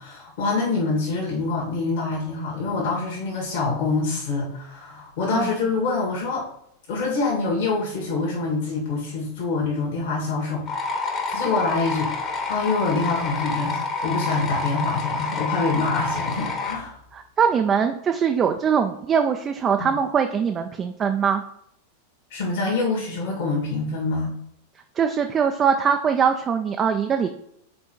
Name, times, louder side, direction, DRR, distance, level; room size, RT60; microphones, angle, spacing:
voice 1, 0.0-6.5 6.9-10.7 11.3-17.0 19.8-19.9 22.3-24.4, left 3 dB, 50° left, -2 dB, 1.8 m, -25 dB
sound 1, 10.7-16.7, left 4 dB, 30° left, 1.3 m, -28 dB
voice 2, 17.1-21.4 25.0-27.3, right 7 dB, 25° right, 5 dB, 0.5 m, -22 dB
5.7 x 4.4 x 4.5 m, 0.75 s
figure-of-eight pair, 90°, 0 cm